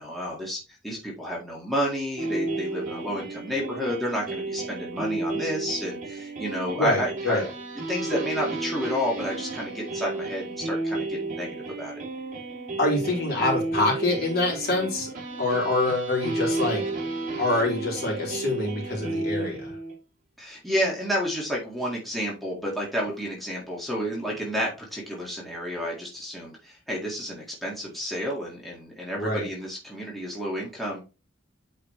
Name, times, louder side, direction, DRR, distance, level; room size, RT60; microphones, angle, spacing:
voice 1, 0.0-7.4 7.9-11.5 11.8-11.9 20.4-31.0, equal, ahead, -4 dB, 1.9 m, -30 dB
sound 1, 2.2-19.9, right 2 dB, 40° right, 2.5 m, -32 dB
voice 2, 6.8-7.5 12.8-15.1 15.4-16.8 17.4-19.8 29.2-29.5, left 2 dB, 55° left, -2 dB, 3.7 m, -25 dB
8.6 x 4.9 x 3.2 m, 0.31 s
head